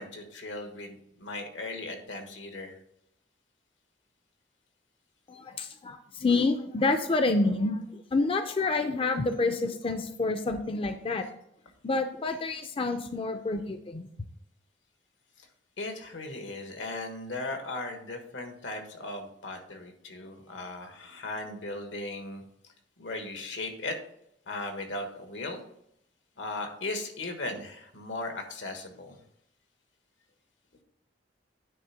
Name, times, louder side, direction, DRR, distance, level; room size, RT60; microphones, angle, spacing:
voice 1, 0.0-2.8 15.4-15.5 15.8-22.4 23.0-24.0 24.5-25.6 26.4-29.2, left 2 dB, 85° left, 5 dB, 1.4 m, -37 dB
voice 2, 5.3-11.3 11.8-14.1, left 3 dB, 30° left, 8 dB, 0.4 m, -28 dB
9.3 x 3.5 x 5.7 m, 0.74 s
head